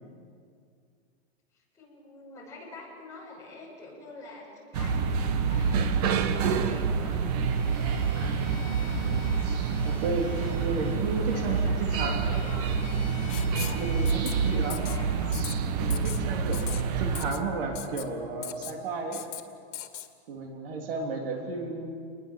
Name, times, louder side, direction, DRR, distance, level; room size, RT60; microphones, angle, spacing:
voice 1, 1.5-5.0 5.5-5.9 6.2-7.2 9.7-10.0 11.2-12.8 14.0-15.3 16.2-16.7 21.3-21.5, left 2 dB, 10° left, -7 dB, 6.8 m, -46 dB
sound 1, 4.7-17.3, right 5 dB, 35° right, 1.3 m, -27 dB
Bowed string instrument, 7.4-14.8, left 8 dB, 45° left, 5.6 m, -49 dB
voice 2, 8.2-8.6 9.8-12.2 13.7-14.8 15.8-16.6 17.0-19.2 20.3-21.9, right 3 dB, 50° right, 2 dB, 3.4 m, -33 dB
Writing, 13.3-13.8 14.1-14.3 14.7-15.0 15.3-15.5 15.9-16.2 16.5-16.8 17.1-17.4 17.8-18.0 18.4-18.8 19.1-19.4 19.7-20.1, left 11 dB, 85° left, 2.2 m, -38 dB
28.5 x 21.0 x 7.5 m, 2.2 s
supercardioid pair, 175°, 35 cm